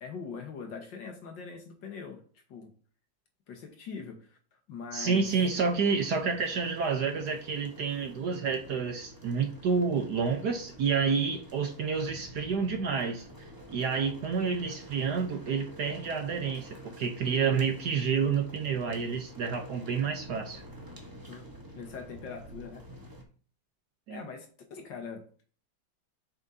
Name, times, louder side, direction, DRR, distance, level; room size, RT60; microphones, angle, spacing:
voice 1, 0.0-2.2 2.5-2.7 3.5-4.4 4.7-5.3 17.2-17.6 21.3-21.4 21.7-22.8 24.1-25.5, left 5 dB, 60° left, 4 dB, 1.8 m, -42 dB
voice 2, 4.9-13.2 13.7-20.6 24.1-24.2, right 5 dB, 60° right, 5 dB, 1.2 m, -29 dB
sound 1, 5.1-23.2, equal, 15° right, 0.7 m, -49 dB
7.5 x 6.2 x 2.7 m, 0.41 s
omnidirectional pair, 2.3 m